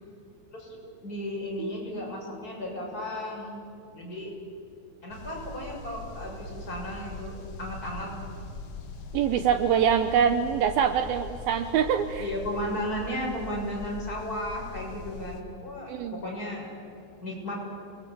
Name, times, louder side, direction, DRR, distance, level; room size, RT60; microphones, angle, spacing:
voice 1, 1.0-3.6 3.9-4.3 5.0-8.1 12.2-16.7 17.2-17.6, left 1 dB, 20° left, -2 dB, 6.7 m, -34 dB
sound 1, 1.6-5.0, right 6 dB, 45° right, 5.5 m, -48 dB
sound 2, 5.1-15.4, left 2 dB, 50° left, 2.3 m, -41 dB
voice 2, 9.1-12.3 15.9-16.2, right 8 dB, 85° right, 9 dB, 2.1 m, -24 dB
29.0 x 22.0 x 8.5 m, 2.5 s
omnidirectional pair, 5.5 m